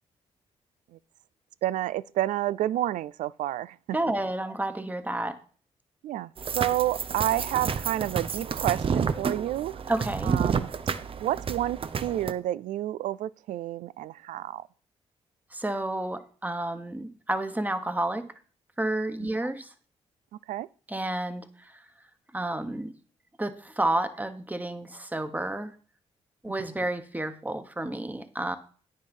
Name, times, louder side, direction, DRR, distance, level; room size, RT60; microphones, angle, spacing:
voice 1, 1.6-4.0 6.0-6.3 6.6-9.8 10.2-10.7 11.2-14.6 19.2-19.3 20.5-20.7, right 13 dB, 80° right, 0.4 m, -29 dB
voice 2, 3.9-5.4 9.9-10.4 15.5-18.3 18.8-19.7 20.9-21.8 22.3-22.9 23.4-25.7 26.4-28.6, right 1 dB, 15° right, 1.3 m, -30 dB
sound 1, 6.4-12.3, right 6 dB, 45° right, 0.7 m, -30 dB
9.4 x 6.5 x 5.4 m
supercardioid pair, 60°, 13 cm